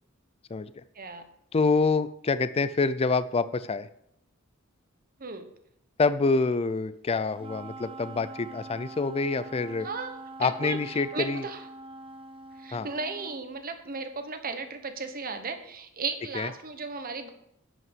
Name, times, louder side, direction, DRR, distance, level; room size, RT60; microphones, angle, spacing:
voice 1, 0.5-0.8 1.5-3.9 6.0-9.9 10.4-11.4 12.7-12.9 16.3-16.5, left 4 dB, 25° left, 14 dB, 0.4 m, -26 dB
Wind instrument woodwind instrument, 7.4-13.5, right 2 dB, 25° right, 0.6 m, -44 dB
voice 2, 10.4-10.8 11.1-11.6 12.6-17.3, right 4 dB, 40° right, 8 dB, 1.3 m, -35 dB
11.0 x 5.6 x 7.4 m, 0.75 s
head